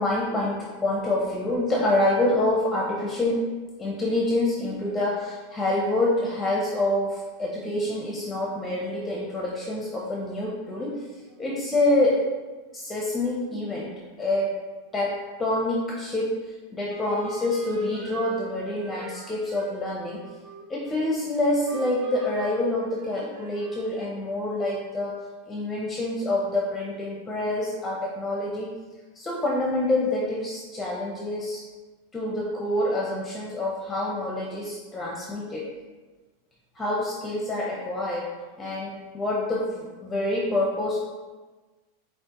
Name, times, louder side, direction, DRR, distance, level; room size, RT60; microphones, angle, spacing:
voice 1, 0.0-3.4 3.8-11.0 11.4-12.3 12.7-13.9 14.2-14.6 14.9-16.4 16.7-20.2 20.7-25.2 25.5-28.7 29.1-31.6 32.1-35.6 36.8-38.3 38.6-41.0, left 1 dB, 15° left, -3 dB, 0.6 m, -26 dB
sound 1, 16.9-21.3 21.7-24.0, right 2 dB, 50° right, 0.7 m, -44 dB
5.9 x 2.5 x 2.9 m, 1.3 s
supercardioid pair, 130°, 0 cm